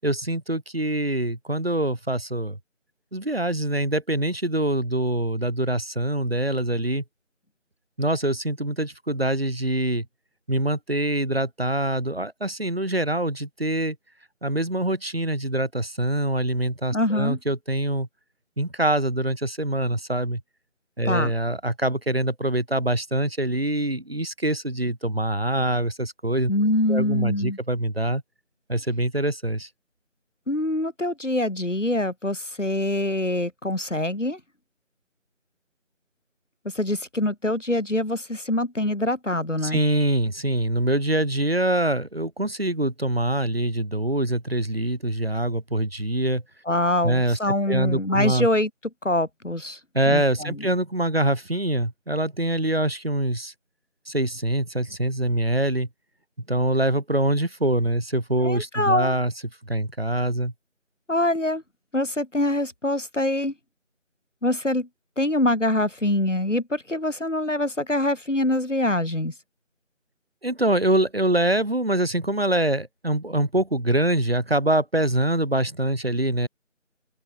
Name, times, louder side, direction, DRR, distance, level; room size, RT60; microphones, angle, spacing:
voice 1, 0.0-2.6 3.1-7.0 8.0-10.0 10.5-14.0 14.4-18.1 18.6-20.4 21.0-26.5 26.9-28.2 28.7-29.7 39.6-46.4 47.0-47.4 47.7-48.5 49.9-53.5 54.1-55.9 56.5-59.3 59.7-60.5 70.4-76.5, right 1 dB, 50° right, 5.8 m, -24 dB
voice 2, 16.9-17.4 21.0-21.3 26.5-27.6 30.5-34.4 36.7-39.8 46.7-48.7 49.0-49.8 50.1-50.6 58.4-59.1 61.1-61.6 61.9-63.5 64.4-64.9 65.2-69.3, left 1 dB, 70° left, 4.8 m, -24 dB
open air
figure-of-eight pair, 175°, 39 cm